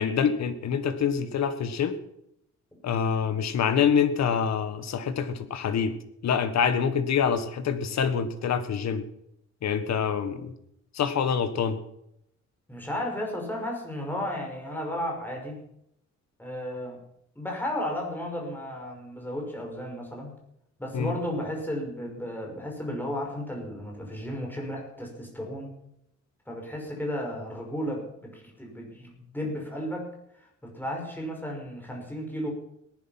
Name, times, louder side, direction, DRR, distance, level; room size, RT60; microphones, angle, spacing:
voice 1, 0.0-2.0 2.8-5.9 6.2-9.0 9.6-10.5 10.9-11.8 20.9-21.1, left 7 dB, 65° left, 10 dB, 1.6 m, -26 dB
voice 2, 12.7-15.6 16.4-17.0 17.4-20.3 20.8-25.7 26.5-30.1 30.4-32.5, left 1 dB, 5° left, 0 dB, 5.6 m, -34 dB
18.5 x 11.0 x 5.9 m, 0.76 s
cardioid pair, 120°, 29 cm